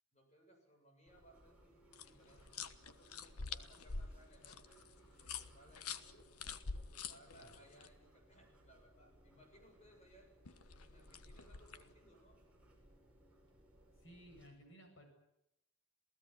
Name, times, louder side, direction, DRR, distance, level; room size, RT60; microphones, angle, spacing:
voice 1, 0.1-6.3 6.8-10.4 10.8-12.4, right 1 dB, 30° left, 3 dB, 7.3 m, -65 dB
sound 1, 1.1-14.5, right 1 dB, 5° right, 6.9 m, -66 dB
sound 2, 1.9-7.9 10.4-11.9, left 5 dB, 85° left, 1.3 m, -47 dB
voice 2, 14.0-15.1, equal, 60° left, 5 dB, 7.7 m, -58 dB
27.5 x 17.0 x 9.5 m, 0.81 s
head